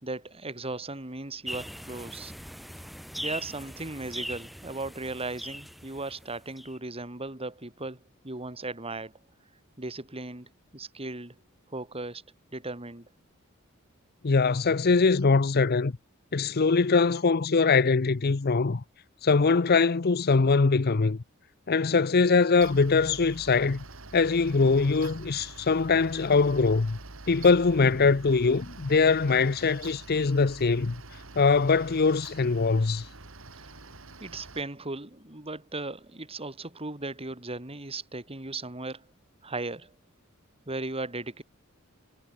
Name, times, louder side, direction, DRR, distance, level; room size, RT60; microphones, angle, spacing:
voice 1, 0.0-2.3 3.2-8.0 8.2-9.1 9.8-11.3 11.7-12.2 12.5-13.0 33.6-33.7 34.2-39.0 39.4-39.9 40.7-41.4, right 2 dB, 30° right, 3.1 m, -37 dB
sound 1, 1.5-6.8, equal, ahead, 1.2 m, -40 dB
voice 2, 14.2-15.9 16.3-18.8 19.2-21.2 21.7-23.8 24.1-27.0 27.3-31.0 31.4-33.1, left 4 dB, 50° left, 0.7 m, -22 dB
Mechanical fan, 22.6-34.6, right 2 dB, 70° right, 3.0 m, -46 dB
head